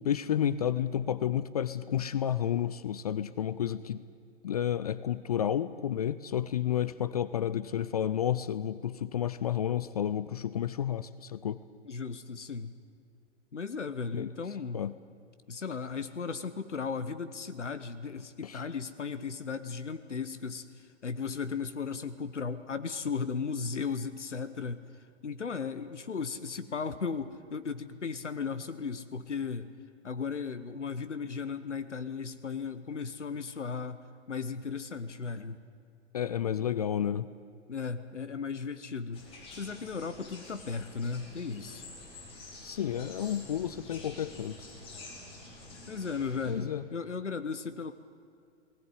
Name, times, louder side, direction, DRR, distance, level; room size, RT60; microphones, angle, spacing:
voice 1, 0.0-4.0 4.4-11.6 14.1-14.3 14.7-14.9 18.4-18.6 36.1-37.3 42.6-44.6 46.5-46.8, left 10 dB, 35° left, 16 dB, 0.4 m, -31 dB
voice 2, 11.8-12.7 13.5-14.8 15.5-24.8 25.2-29.7 30.0-34.0 34.3-35.6 37.7-39.2 39.6-41.9 45.9-47.9, left 5 dB, 75° left, 11 dB, 1.1 m, -36 dB
sound 1, 39.1-46.5, left 2 dB, 15° left, 5.1 m, -48 dB
19.5 x 17.5 x 9.7 m, 2.4 s
figure-of-eight pair, 115°, 36 cm